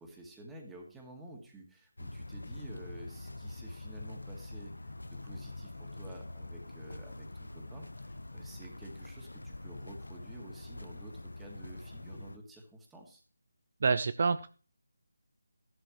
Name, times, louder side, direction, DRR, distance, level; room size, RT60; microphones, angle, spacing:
voice 1, 0.0-13.2, right 1 dB, 5° right, 0 dB, 2.1 m, -51 dB
sound 1, 2.0-12.4, left 2 dB, 80° left, 0.9 m, -45 dB
voice 2, 13.8-14.5, right 4 dB, 45° right, 13 dB, 0.5 m, -27 dB
13.5 x 11.5 x 3.1 m, 0.37 s
figure-of-eight pair, 160°, 0 cm